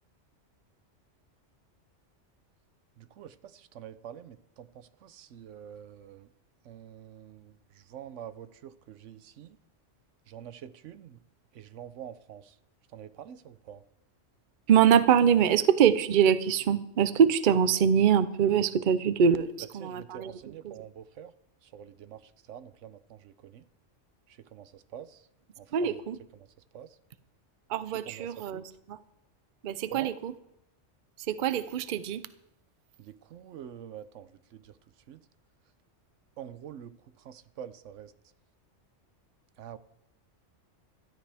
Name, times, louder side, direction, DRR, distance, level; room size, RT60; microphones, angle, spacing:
voice 1, 3.0-6.3 6.6-9.6 10.3-11.2 11.5-12.6 12.9-13.8 19.8-21.4 21.6-23.6 24.3-25.3 25.6-25.9 26.7-27.0 28.0-28.6 29.9-30.1 33.0-35.3 36.4-38.3 39.6-39.8, right 9 dB, 85° right, 1.0 m, -46 dB
voice 2, 14.7-19.5 19.7-20.3 20.6-20.7 25.7-26.2 27.7-28.6 28.9-29.0 29.6-30.3 31.2-32.3, right 8 dB, 50° right, 0.7 m, -24 dB
17.0 x 13.0 x 3.5 m
omnidirectional pair, 1.2 m